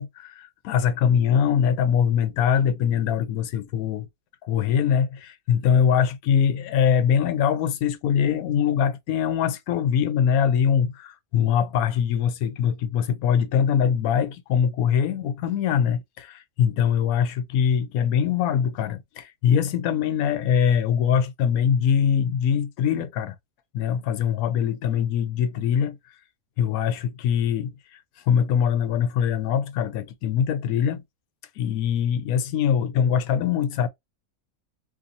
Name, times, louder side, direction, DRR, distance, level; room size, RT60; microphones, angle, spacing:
voice 1, 0.0-4.1 4.4-23.4 23.7-26.0 26.6-28.0 28.3-31.0 31.6-33.9, left 8 dB, 85° left, 1.0 m, -23 dB
2.7 x 2.6 x 2.4 m
omnidirectional pair, 1.5 m